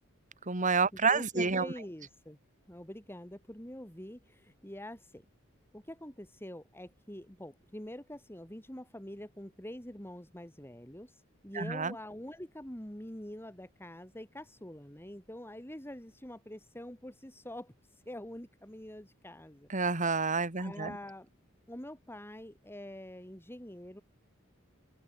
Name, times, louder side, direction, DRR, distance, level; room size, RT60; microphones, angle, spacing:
voice 1, 0.5-1.7 11.6-11.9 19.7-20.9, right 4 dB, 40° right, 2.1 m, -29 dB
voice 2, 1.0-2.4 2.7-5.2 5.7-11.1 11.4-17.7 18.1-19.7 20.6-21.3 21.7-24.0, left 1 dB, 10° left, 6.4 m, -45 dB
open air
head